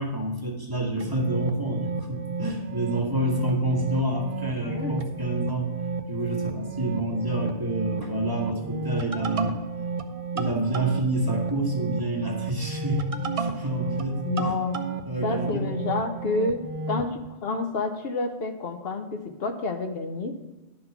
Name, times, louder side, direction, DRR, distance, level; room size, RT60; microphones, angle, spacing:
voice 1, 0.0-5.7 6.1-9.6 10.3-13.1 13.4-14.7 15.1-15.7, right 1 dB, 20° right, -1 dB, 1.2 m, -28 dB
sound 1, 1.0-17.1, right 4 dB, 40° right, 0.5 m, -32 dB
voice 2, 4.7-5.0 14.2-14.8 15.2-16.6 16.9-20.3, left 3 dB, 70° left, 6 dB, 0.9 m, -29 dB
10.5 x 3.8 x 5.7 m, 1.1 s
omnidirectional pair, 1.1 m